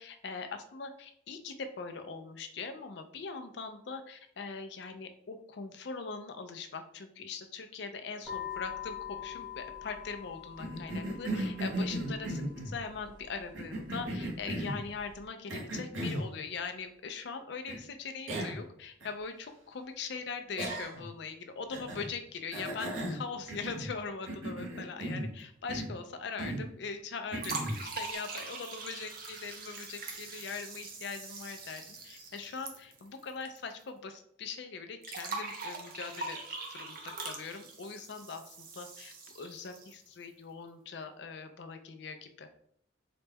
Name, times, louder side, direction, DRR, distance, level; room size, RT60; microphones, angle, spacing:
voice 1, 0.0-12.3 12.7-36.4 36.7-42.5, left 5 dB, 60° left, 7 dB, 0.4 m, -41 dB
sound 1, 8.2-15.2, left 9 dB, 5° right, 0.7 m, -45 dB
Cough, 10.6-12.8 13.5-14.8 15.5-16.3 17.7-17.8 18.3-18.7 19.0-19.1 20.6-21.1 21.7-22.1 22.5-23.9 24.3-25.3 25.7-26.0 26.4-26.7 27.3-27.8, right 1 dB, 80° right, 0.9 m, -36 dB
sound 2, 27.4-33.6 33.8-33.9 35.0-40.1, right 3 dB, 50° right, 0.6 m, -42 dB
4.0 x 2.2 x 3.4 m, 0.65 s
head